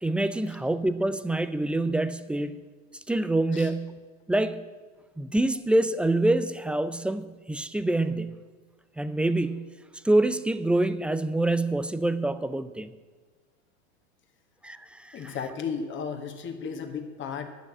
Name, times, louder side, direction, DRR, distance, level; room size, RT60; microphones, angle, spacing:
voice 1, 0.0-2.6 3.1-4.0 4.3-4.6 5.2-8.4 9.0-9.7 10.0-12.9 14.6-15.3, right 2 dB, 5° right, 12 dB, 0.4 m, -26 dB
voice 2, 15.1-17.5, left 6 dB, 30° left, 5 dB, 1.8 m, -34 dB
11.5 x 6.4 x 8.7 m, 1.4 s
hypercardioid pair, 105°, 36 cm